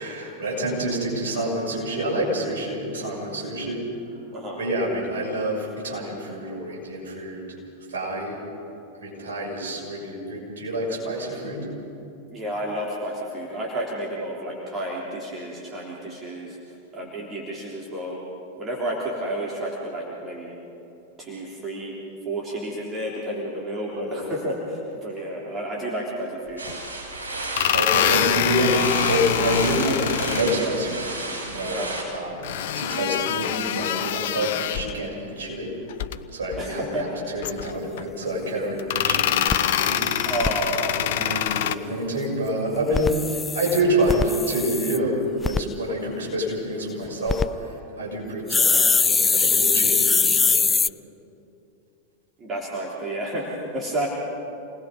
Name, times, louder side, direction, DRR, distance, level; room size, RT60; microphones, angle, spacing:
voice 1, 0.0-3.9 4.5-7.5 7.9-8.4 9.0-11.7 24.0-24.3 27.7-31.8 32.1-35.7 36.3-40.3 40.9-50.6, right 1 dB, 60° right, -2 dB, 6.8 m, -27 dB
voice 2, 12.3-16.6 16.9-18.2 18.6-20.5 21.2-21.9 22.2-26.6 31.7-31.9 36.6-37.2 40.3-40.9 52.4-54.1, right 1 dB, 25° right, -4 dB, 3.5 m, -31 dB
sound 1, 26.6-32.0, right 2 dB, 80° right, 5.4 m, -33 dB
sound 2, 26.7-26.8 27.4-30.6 32.4-35.0 35.9-36.2 36.5-36.7 37.4-38.0 38.8-41.7, left 11 dB, 55° left, 0.7 m, -25 dB
sound 3, 38.3-38.4 38.8-38.9 39.1-39.2 39.5-40.5 42.8-45.0 45.4-45.6 47.1-47.5 48.5-50.9, left 5 dB, 15° left, 0.4 m, -22 dB
28.5 x 19.5 x 5.4 m, 2.8 s
figure-of-eight pair, 90°, 0 cm